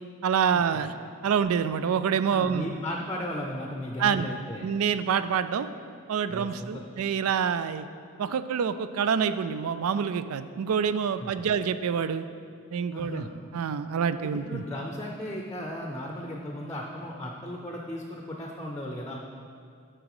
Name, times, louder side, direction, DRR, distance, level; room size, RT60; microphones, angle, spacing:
voice 1, 0.2-0.9 1.2-2.7 4.0-4.3 4.6-5.7 6.1-7.9 8.2-12.2 12.7-13.3 13.5-14.6, right 7 dB, 85° right, 13 dB, 0.4 m, -26 dB
voice 2, 2.3-4.7 6.3-6.9 11.2-11.5 12.9-13.3 14.2-19.2, left 1 dB, 15° left, 0 dB, 0.5 m, -36 dB
8.9 x 6.2 x 4.8 m, 2.3 s
head